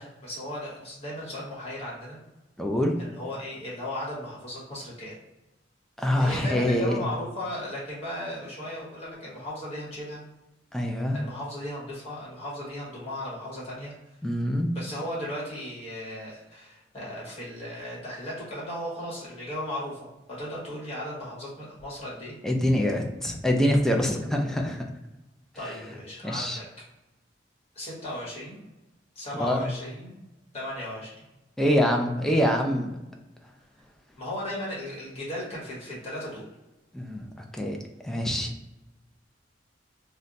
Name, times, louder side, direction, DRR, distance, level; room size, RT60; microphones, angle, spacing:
voice 1, 0.0-2.2 3.0-5.1 6.2-10.2 11.1-13.9 14.7-22.3 25.5-26.6 27.7-28.6 29.1-30.2 30.5-31.3 34.2-36.5, left 1 dB, 35° left, -6 dB, 1.3 m, -36 dB
voice 2, 2.6-3.0 6.0-7.0 10.7-11.2 14.2-14.7 22.4-24.8 26.2-26.6 29.4-29.6 31.6-32.9 36.9-37.8 38.0-38.5, left 1 dB, ahead, 1 dB, 0.3 m, -25 dB
2.5 x 2.1 x 3.9 m, 0.99 s
head